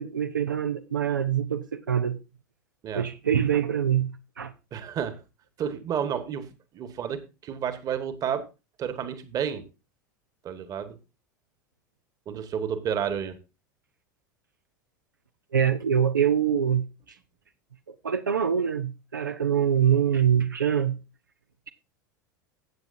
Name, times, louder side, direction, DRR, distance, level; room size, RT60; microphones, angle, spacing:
voice 1, 0.0-2.2 2.9-4.1 4.4-4.5 15.5-16.8 18.0-21.0, right 8 dB, 85° right, 0.6 m, -24 dB
voice 2, 4.7-5.2 5.6-6.5 6.7-8.4 8.8-9.6 10.4-11.0 12.3-13.4, right 8 dB, 35° right, 1.5 m, -31 dB
14.5 x 8.0 x 2.6 m
figure-of-eight pair, 80°, 10 cm